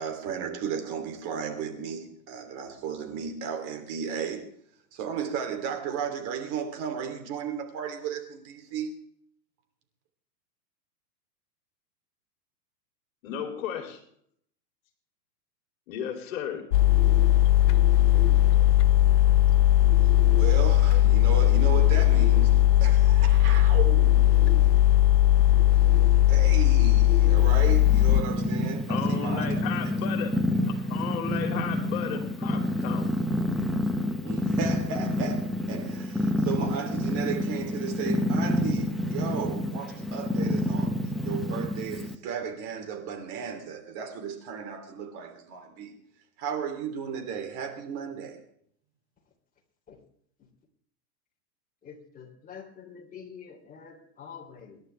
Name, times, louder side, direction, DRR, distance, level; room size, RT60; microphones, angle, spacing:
voice 1, 0.0-4.5 4.9-9.0 20.3-24.6 26.3-29.6 34.2-46.0 46.4-48.4, right 7 dB, 40° right, 3.1 m, -35 dB
voice 2, 13.2-14.0 15.9-16.7 28.9-30.3 30.6-33.1, left 8 dB, 55° left, 3.0 m, -34 dB
sound 1, 16.7-28.2, left 14 dB, 80° left, 0.8 m, -19 dB
Purr, 27.4-42.2, left 1 dB, ahead, 0.5 m, -28 dB
voice 3, 51.8-54.8, left 7 dB, 15° left, 3.2 m, -46 dB
26.5 x 11.5 x 3.4 m
hypercardioid pair, 135°, 49 cm